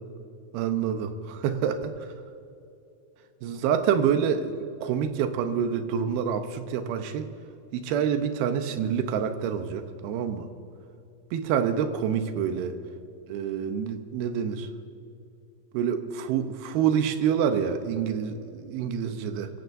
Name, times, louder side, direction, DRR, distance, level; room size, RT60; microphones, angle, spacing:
voice 1, 0.5-2.1 3.4-7.3 7.7-10.5 11.3-12.8 13.3-14.7 15.7-19.5, right 8 dB, 80° right, 8 dB, 2.7 m, -27 dB
23.0 x 15.5 x 2.6 m, 2.7 s
omnidirectional pair, 4.4 m